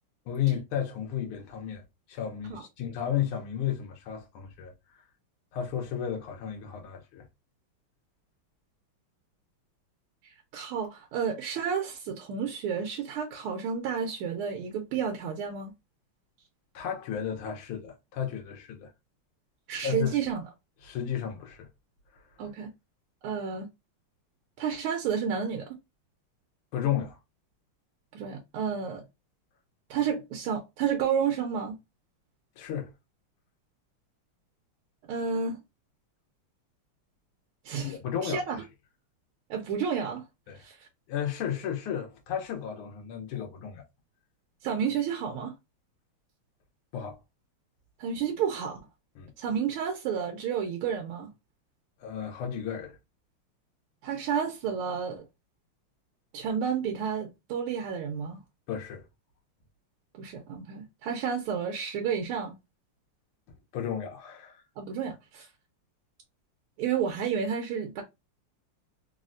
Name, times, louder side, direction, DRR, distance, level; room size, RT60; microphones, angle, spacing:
voice 1, 0.3-1.8 2.1-5.0 5.5-7.2 16.7-18.9 19.8-20.3 20.8-21.7 22.1-22.2 26.7-27.2 32.6-32.9 37.8-38.4 40.5-40.6 41.1-43.8 46.9-47.2 49.2-49.3 52.0-53.0 58.7-59.1 63.7-64.6, left 9 dB, 90° left, 1.6 m, -33 dB
voice 2, 10.5-15.7 19.7-20.4 22.4-22.7 23.2-23.7 24.6-25.7 28.1-29.0 29.9-31.7 35.1-35.6 37.6-38.0 38.2-38.6 39.5-40.2 40.5-40.9 44.6-45.5 48.0-48.8 49.4-51.3 54.0-55.2 56.3-58.4 60.1-62.5 64.8-65.5 66.8-68.0, right 7 dB, 85° right, 1.5 m, -31 dB
4.0 x 2.1 x 2.5 m
omnidirectional pair, 2.4 m